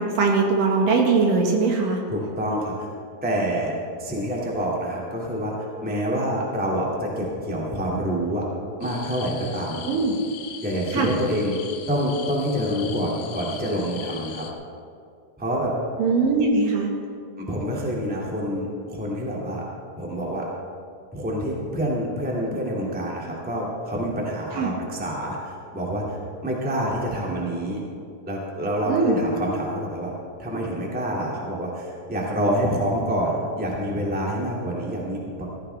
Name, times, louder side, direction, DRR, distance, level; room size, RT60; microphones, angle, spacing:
voice 1, 0.0-2.0 9.9-10.1 10.9-11.2 16.0-16.9 24.5-24.7 28.8-29.2, right 4 dB, 80° right, 0 dB, 3.3 m, -21 dB
voice 2, 2.1-2.8 3.2-3.7 4.0-5.6 5.8-8.5 8.8-9.8 10.6-11.6 11.9-14.5 15.4-15.7 17.4-19.6 19.9-20.5 21.1-26.2 26.4-27.8 28.2-30.1 30.4-35.5, equal, 5° right, -3 dB, 1.7 m, -27 dB
sound 1, 8.8-14.5, left 8 dB, 70° left, 2.3 m, -40 dB
16.5 x 14.5 x 3.5 m, 2.4 s
omnidirectional pair, 3.8 m